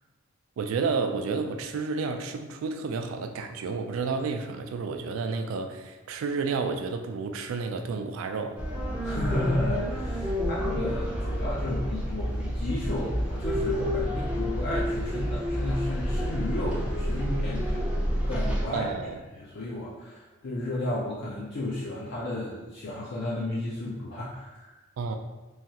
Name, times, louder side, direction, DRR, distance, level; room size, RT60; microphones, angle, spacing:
voice 1, 0.6-8.6 18.7-19.2 25.0-25.2, right 4 dB, 80° right, 6 dB, 0.3 m, -31 dB
sound 1, 8.6-18.7, equal, 5° right, 0.4 m, -29 dB
voice 2, 9.0-18.0 18.2-18.9 19.3-24.8, left 1 dB, 60° left, -6 dB, 0.5 m, -33 dB
3.1 x 2.3 x 2.8 m, 1.1 s
head